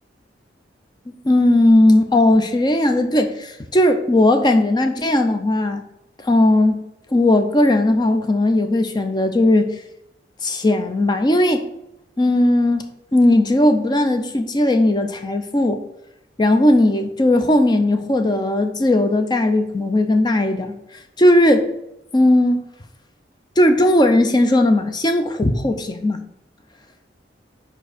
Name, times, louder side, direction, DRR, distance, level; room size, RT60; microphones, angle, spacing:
voice 1, 1.2-5.8 6.2-6.8 7.1-9.7 10.4-11.7 12.2-15.8 16.4-20.8 21.2-21.7 22.1-22.6 23.6-26.2, left 1 dB, 25° left, 7 dB, 0.5 m, -17 dB
5.1 x 4.6 x 5.0 m, 0.84 s
head